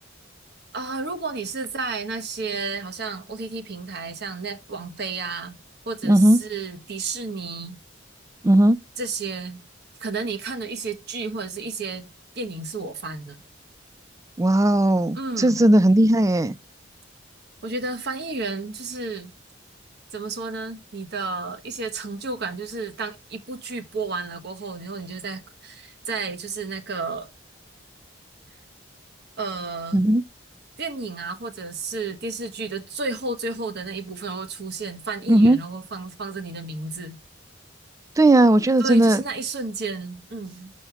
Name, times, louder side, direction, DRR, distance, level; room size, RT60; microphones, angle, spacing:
voice 1, 0.7-5.6 5.9-7.8 9.0-9.6 10.0-12.1 12.3-13.4 15.1-15.7 17.6-19.3 20.1-27.3 29.4-30.1 30.8-37.2 38.8-40.7, right 3 dB, 60° right, 1.1 m, -32 dB
voice 2, 6.0-6.4 8.4-8.8 14.4-16.5 29.9-30.2 35.3-35.6 38.2-39.2, right 1 dB, 15° right, 0.4 m, -17 dB
5.9 x 4.4 x 5.6 m
head